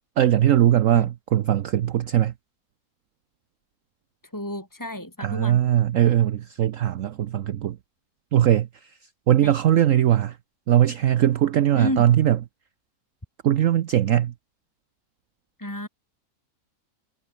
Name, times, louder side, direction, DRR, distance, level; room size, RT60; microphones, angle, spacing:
voice 1, 0.2-2.3 5.2-7.8 8.3-8.7 9.3-10.4 10.7-12.4 13.4-14.3, right 11 dB, 60° right, 1.0 m, -20 dB
voice 2, 4.3-5.6 9.4-9.5 11.7-12.1 15.6-15.9, left 1 dB, 10° left, 6.6 m, -31 dB
omnidirectional pair, 1.7 m